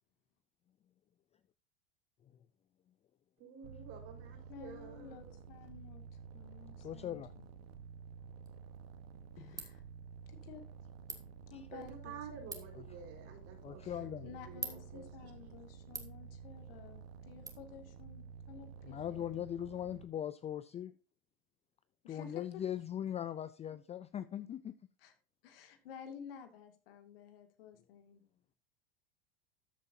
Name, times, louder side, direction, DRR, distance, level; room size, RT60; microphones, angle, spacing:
voice 1, 3.4-5.3 11.7-15.5, right 6 dB, 55° right, 4.3 m, -51 dB
sound 1, 3.6-20.1, right 6 dB, 85° right, 1.3 m, -52 dB
voice 2, 4.5-6.0 6.3-7.2 9.4-9.8 10.3-10.6 11.5-12.5 13.8-19.4 22.0-22.4 23.7-23.8 25.0-25.1 25.4-28.2, left 7 dB, 75° left, 2.3 m, -53 dB
voice 3, 6.8-7.3 11.5-11.6 13.6-14.3 18.8-20.9 22.1-24.7, left 10 dB, 20° left, 0.4 m, -40 dB
Ratchet pawl, 8.4-17.5, right 3 dB, 10° right, 2.1 m, -51 dB
13.5 x 7.9 x 2.7 m
hypercardioid pair, 105°, 29 cm